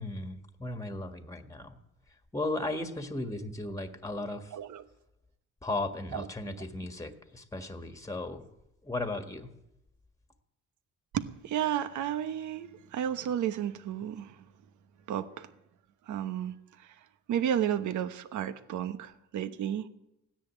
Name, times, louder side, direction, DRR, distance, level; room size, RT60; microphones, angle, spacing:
voice 1, 0.0-1.8 2.3-4.5 5.6-8.4 8.8-9.5, left 2 dB, 10° left, 6 dB, 1.7 m, -36 dB
voice 2, 4.5-4.8 6.1-6.3 11.1-14.4 15.1-15.5 16.1-16.9 17.3-19.9, right 10 dB, 75° right, 10 dB, 1.1 m, -32 dB
16.5 x 10.5 x 8.5 m, 0.88 s
cardioid pair, 90°, 30 cm